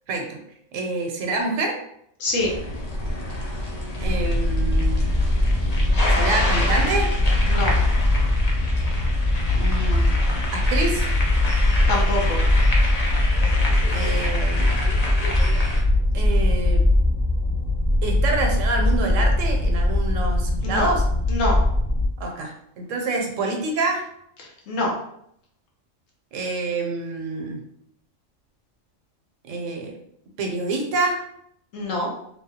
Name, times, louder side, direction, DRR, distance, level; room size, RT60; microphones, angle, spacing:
voice 1, 0.1-0.4 0.7-1.7 4.0-5.0 6.1-7.1 9.5-10.2 10.5-11.1 13.9-14.7 16.1-16.9 18.0-21.0 22.2-24.1 26.3-27.6 29.5-29.9 30.4-31.2, right 3 dB, 80° right, 2 dB, 1.0 m, -27 dB
voice 2, 2.2-2.5 7.5-7.7 11.9-12.4 20.6-20.9 21.3-21.6 24.7-24.9 31.7-32.1, left 2 dB, 80° left, -1 dB, 1.2 m, -24 dB
sound 1, 2.4-15.8, left 1 dB, 45° left, 0.5 m, -28 dB
sound 2, 4.1-22.0, left 1 dB, 5° right, 0.5 m, -21 dB
3.3 x 2.2 x 2.8 m, 0.72 s
omnidirectional pair, 1.3 m